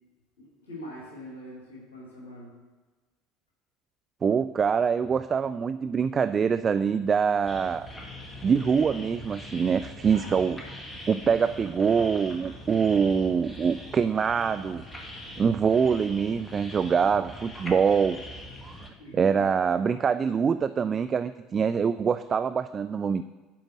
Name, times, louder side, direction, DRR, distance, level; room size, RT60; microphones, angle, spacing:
voice 1, 0.4-2.5 10.0-10.4 19.0-19.6, equal, 75° left, -6 dB, 2.3 m, -43 dB
voice 2, 4.2-7.9 8.4-10.6 11.1-14.8 15.4-18.2 18.6-18.7 19.1-23.2, right 6 dB, 30° right, 12 dB, 0.3 m, -24 dB
sound 1, 7.5-18.9, left 1 dB, 15° left, 2.0 m, -42 dB
10.5 x 5.1 x 7.3 m, 1.3 s
figure-of-eight pair, 65°, 0 cm